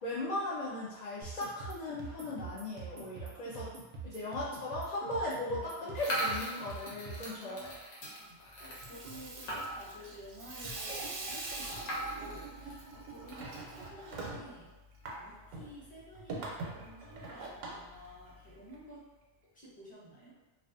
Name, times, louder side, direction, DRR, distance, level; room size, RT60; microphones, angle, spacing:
voice 1, 0.0-3.7 4.0-7.8, left 2 dB, 60° left, -8 dB, 0.4 m, -37 dB
sound 1, 1.2-7.4, right 4 dB, 60° right, 0.6 m, -45 dB
sound 2, 5.9-10.0 10.4-10.5 10.7-10.8 11.6-13.4, right 1 dB, 75° left, 1.0 m, -39 dB
voice 2, 7.4-7.8 8.6-14.7 15.2-19.1 19.5-20.3, equal, 10° left, -10 dB, 0.6 m, -52 dB
Water tap faucet / Sink (filling or washing), 8.6-18.8, right 2 dB, 90° right, 0.9 m, -44 dB
2.3 x 2.3 x 2.5 m, 1.1 s
omnidirectional pair, 1.2 m